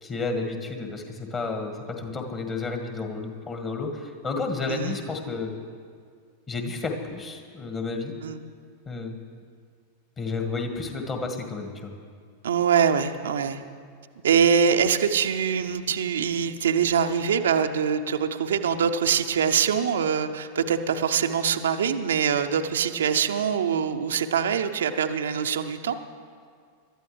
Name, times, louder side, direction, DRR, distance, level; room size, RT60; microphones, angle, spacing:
voice 1, 0.0-5.5 6.5-8.1 8.9-9.2 10.2-11.9, left 3 dB, 25° left, 4 dB, 1.8 m, -31 dB
voice 2, 12.4-13.6 14.2-26.0, right 7 dB, 65° right, 7 dB, 0.7 m, -24 dB
22.5 x 13.0 x 3.3 m, 2.1 s
figure-of-eight pair, 90°, 0 cm